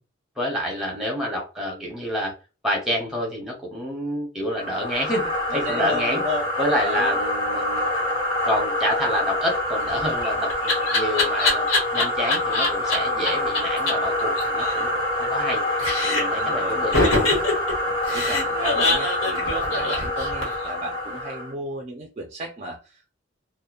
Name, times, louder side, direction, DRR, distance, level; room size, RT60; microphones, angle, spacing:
voice 1, 0.4-2.3 2.6-6.2 6.6-7.9 8.4-11.6 11.9-15.6 16.0-17.2, equal, ahead, -1 dB, 0.8 m, -28 dB
sound 1, 4.5-21.5, left 1 dB, 25° left, 1.1 m, -26 dB
voice 2, 5.5-6.4 6.8-7.2 16.3-16.8 18.1-23.1, equal, 35° right, 2 dB, 0.4 m, -34 dB
Laughter, 9.9-13.0 13.2-13.3 13.5-13.6 13.9-14.0 14.2-15.5 15.8-16.4 16.9-20.7, left 2 dB, 90° left, 1.0 m, -23 dB
2.8 x 2.0 x 2.4 m, 0.33 s
head